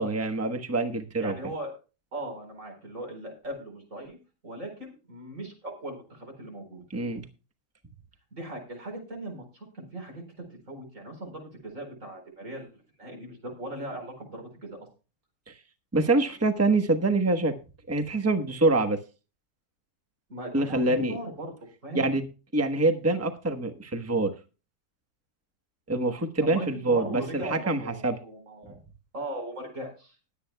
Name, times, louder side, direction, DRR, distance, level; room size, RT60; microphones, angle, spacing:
voice 1, 0.0-1.3 6.9-7.2 15.5-15.6 15.9-17.5 17.9-19.0 20.5-21.1 21.9-22.3 22.5-24.3 25.9-28.2, right 2 dB, 10° right, 7 dB, 1.0 m, -25 dB
voice 2, 1.2-1.7 2.1-4.2 4.4-6.8 8.3-10.2 10.7-12.7 13.0-14.9 20.3-21.5 21.8-22.1 26.4-28.8 29.1-30.2, right 1 dB, 55° right, 3 dB, 4.8 m, -38 dB
20.5 x 8.7 x 2.3 m, 0.32 s
omnidirectional pair, 1.6 m